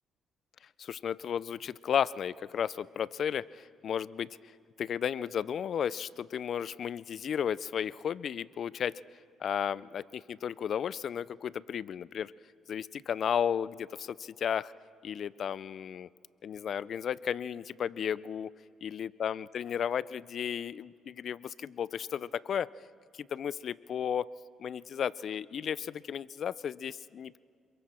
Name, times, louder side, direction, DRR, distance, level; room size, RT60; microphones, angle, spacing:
voice 1, 0.8-4.3 4.8-9.0 9.4-12.3 12.7-14.7 15.0-16.1 16.4-18.5 18.9-22.7 23.2-24.3 24.6-27.4, left 8 dB, 60° left, 20 dB, 0.4 m, -34 dB
26.5 x 23.0 x 4.4 m, 2.3 s
cardioid pair, 85°, 0 cm